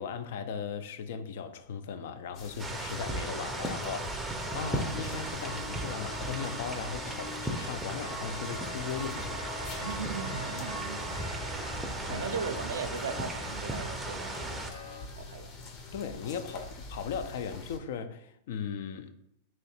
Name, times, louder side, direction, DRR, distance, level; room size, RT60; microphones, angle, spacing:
voice 1, 0.0-9.4 12.1-12.3 15.9-19.1, left 7 dB, 70° left, 0.4 m, -38 dB
sound 1, 2.3-17.8, left 3 dB, 40° left, 0.7 m, -46 dB
sound 2, 2.6-14.7, right 2 dB, 10° right, 0.5 m, -36 dB
sound 3, 4.4-15.0, left 1 dB, 90° left, 1.3 m, -44 dB
voice 2, 9.8-11.3 12.1-14.7 15.1-15.5, right 5 dB, 90° right, 0.4 m, -38 dB
3.0 x 2.7 x 4.2 m
hypercardioid pair, 115°, 0 cm